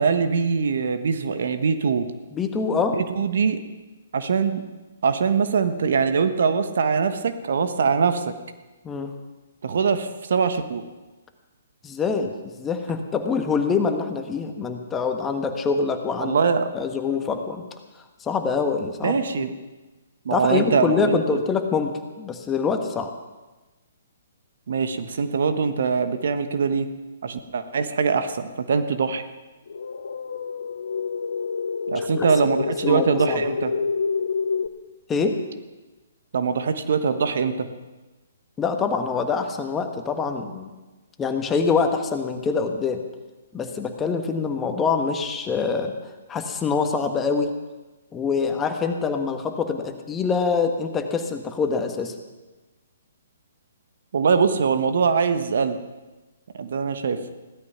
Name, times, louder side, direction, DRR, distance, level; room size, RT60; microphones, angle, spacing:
voice 1, 0.0-2.1 2.9-3.6 4.1-4.6 5.0-8.3 9.6-10.8 16.2-16.7 19.0-19.5 20.2-21.4 24.7-26.9 27.2-29.2 31.9-33.7 36.3-37.7 54.1-55.8 56.6-57.2, right 5 dB, 65° right, 10 dB, 1.3 m, -22 dB
voice 2, 2.3-3.0 8.8-9.1 11.8-16.4 16.7-17.6 18.2-19.5 20.3-23.1 31.9-32.3 32.8-33.4 35.1-35.4 38.6-40.7 41.2-43.0 43.5-45.9 46.3-47.5 48.1-52.1, left 5 dB, 15° left, 5 dB, 1.5 m, -25 dB
sound 1, 29.7-34.7, left 5 dB, 75° left, 1.0 m, -28 dB
16.5 x 12.5 x 5.9 m, 1.2 s
hypercardioid pair, 135°, 0 cm